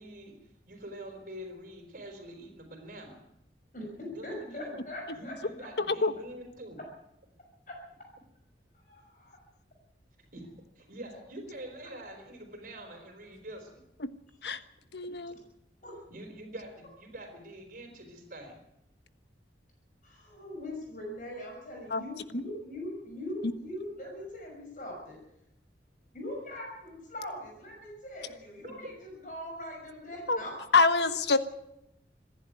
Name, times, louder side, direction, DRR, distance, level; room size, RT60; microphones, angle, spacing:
voice 1, 0.0-3.2 4.1-4.8 5.1-6.8 10.3-10.5 10.8-13.8 15.0-15.4 16.1-18.6 28.6-28.9, right 1 dB, 50° right, 4 dB, 4.3 m, -45 dB
voice 2, 3.7-5.7 7.7-7.8 8.7-9.4 15.8-15.9 20.0-25.2 26.1-30.5, left 1 dB, 45° left, 0 dB, 6.2 m, -41 dB
voice 3, 5.8-6.1 14.0-14.1 14.4-14.6 14.9-15.3 21.9-22.0 22.3-22.4 30.3-30.4 30.7-31.4, left 4 dB, 70° left, 11 dB, 1.2 m, -25 dB
26.5 x 11.0 x 9.4 m, 0.83 s
head